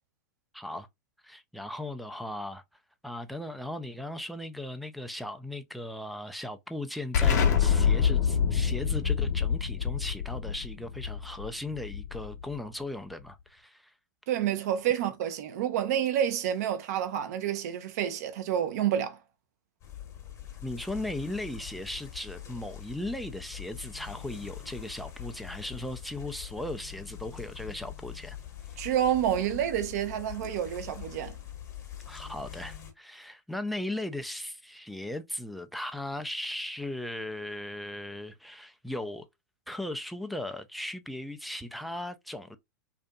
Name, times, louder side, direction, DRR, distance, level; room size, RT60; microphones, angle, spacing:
voice 1, 0.5-0.9 1.2-2.6 3.0-13.9 20.6-28.4 32.1-39.3 39.7-42.6, left 1 dB, ahead, 0.3 m, -37 dB
Explosion, 7.1-12.5, left 7 dB, 60° left, 0.8 m, -26 dB
voice 2, 14.3-19.2 28.8-31.4, right 10 dB, 55° right, 0.7 m, -29 dB
sound 1, 19.8-32.9, left 11 dB, 30° left, 0.9 m, -43 dB
2.6 x 2.5 x 2.2 m
figure-of-eight pair, 100°, 10 cm